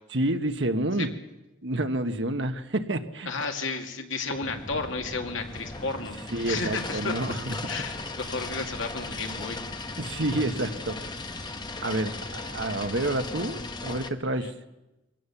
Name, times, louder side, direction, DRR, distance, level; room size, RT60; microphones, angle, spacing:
voice 1, 0.1-1.1 1.6-3.3 6.3-7.7 10.0-11.0 11.8-14.5, right 1 dB, 65° right, 8 dB, 1.4 m, -29 dB
voice 2, 3.3-6.2 6.4-7.4 7.7-9.6 14.3-14.5, left 3 dB, 80° left, 4 dB, 2.4 m, -33 dB
sound 1, 4.4-14.1, left 3 dB, 20° left, 1.0 m, -37 dB
sound 2, 5.4-12.5, equal, ahead, 7.5 m, -53 dB
23.5 x 17.0 x 7.2 m, 0.97 s
head